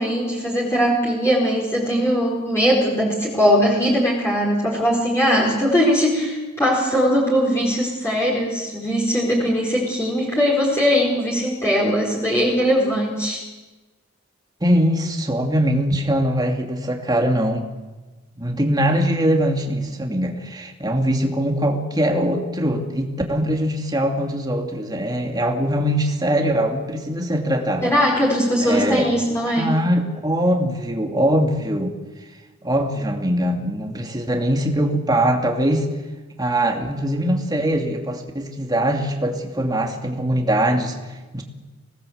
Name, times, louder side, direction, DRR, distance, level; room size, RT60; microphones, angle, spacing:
voice 1, 0.0-13.4 27.8-29.7, equal, 10° left, -4 dB, 4.6 m, -20 dB
voice 2, 14.6-17.7 18.4-27.9 28.6-29.1 29.6-31.9 32.6-35.9 36.4-41.4, equal, 20° right, 2 dB, 2.7 m, -22 dB
25.5 x 18.5 x 8.1 m, 1.2 s
head